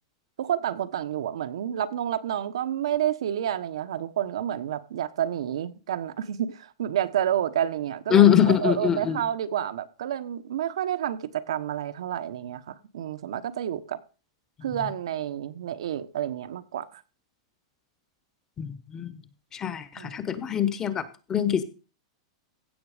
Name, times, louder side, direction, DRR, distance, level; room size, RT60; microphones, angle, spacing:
voice 1, 0.4-14.0 14.6-17.0 20.0-20.2, right 10 dB, 80° right, 1.1 m, -29 dB
voice 2, 8.1-9.2 18.6-19.1 19.5-21.6, left 10 dB, 15° left, 1.0 m, -23 dB
15.5 x 7.2 x 5.0 m
supercardioid pair, 165°, 3 cm